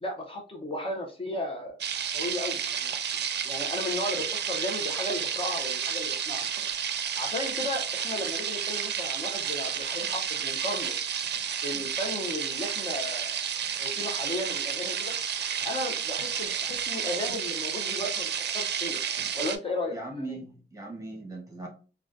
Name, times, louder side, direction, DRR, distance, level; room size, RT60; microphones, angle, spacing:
voice 1, 0.0-1.8 2.1-3.0 3.4-6.4 7.2-10.9 11.6-13.4 13.8-15.1 15.6-19.0 19.3-20.4, left 1 dB, 30° left, 1 dB, 0.6 m, -35 dB
sound 1, 1.8-19.6, right 8 dB, 75° right, 0.4 m, -31 dB
voice 2, 19.9-21.7, right 2 dB, 20° right, -1 dB, 1.0 m, -39 dB
3.7 x 2.2 x 2.5 m, 0.35 s
wide cardioid pair, 165°, 17 cm